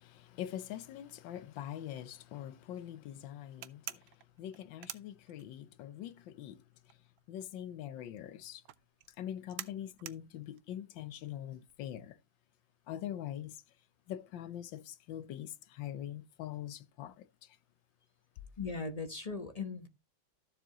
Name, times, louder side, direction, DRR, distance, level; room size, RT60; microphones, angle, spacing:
voice 1, 0.0-7.0 7.3-8.6 9.2-12.2 12.9-13.6 14.1-17.6, left 11 dB, 75° left, 1.4 m, -43 dB
sound 1, 3.6-5.8 6.1-11.9, right 13 dB, 85° right, 1.5 m, -47 dB
voice 2, 18.6-19.9, left 4 dB, 30° left, 0.7 m, -38 dB
14.0 x 7.3 x 2.9 m
omnidirectional pair, 2.2 m